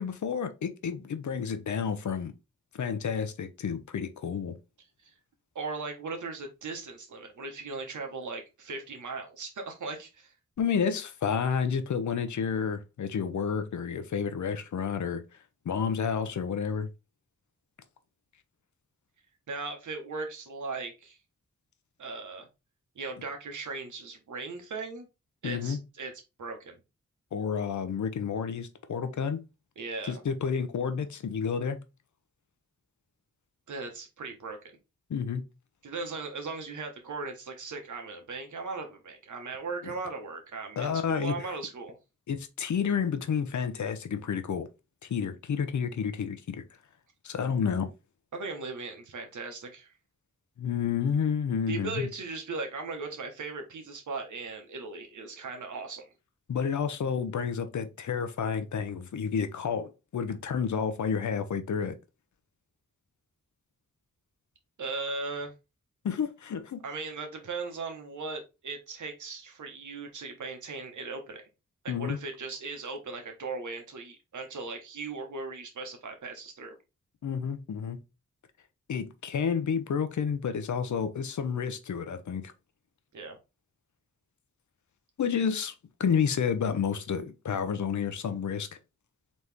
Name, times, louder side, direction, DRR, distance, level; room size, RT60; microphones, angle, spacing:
voice 1, 0.0-2.3 2.7-4.5 10.6-15.2 15.6-16.9 25.4-25.8 27.3-29.4 30.0-31.8 35.1-35.4 39.8-39.9 40.8-41.4 42.3-44.7 45.0-46.6 47.2-47.9 50.6-52.1 56.5-62.0 66.0-66.8 71.9-72.2 77.2-78.0 78.9-82.5 85.2-85.7 86.0-88.7, left 6 dB, 75° left, 0.7 m, -30 dB
voice 2, 5.5-10.3 19.5-21.2 22.0-22.5 22.9-25.1 25.4-26.1 26.4-26.7 29.8-30.2 33.7-34.7 35.8-42.0 48.3-49.9 51.7-56.1 64.8-65.5 66.8-71.4 71.8-76.8 83.1-83.4, right 3 dB, 85° right, 1.2 m, -38 dB
4.0 x 3.1 x 3.5 m
cardioid pair, 65°, 29 cm